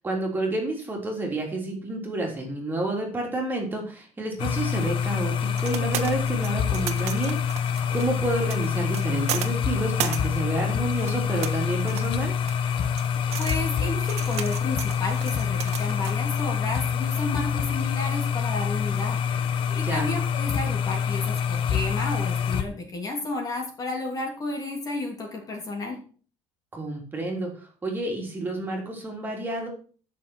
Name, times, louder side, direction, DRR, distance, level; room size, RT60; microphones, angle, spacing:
voice 1, 0.0-7.4 7.9-12.3 19.8-20.1 26.7-27.5 27.8-29.7, right 2 dB, 15° right, 0 dB, 3.4 m, -29 dB
sound 1, 4.4-22.6, left 7 dB, 45° left, 1.1 m, -26 dB
sound 2, 4.5-16.2, right 11 dB, 60° right, 1.5 m, -36 dB
voice 2, 13.4-26.0, left 2 dB, 30° left, 1 dB, 2.9 m, -32 dB
12.0 x 6.8 x 6.2 m, 0.41 s
cardioid pair, 165°, 12 cm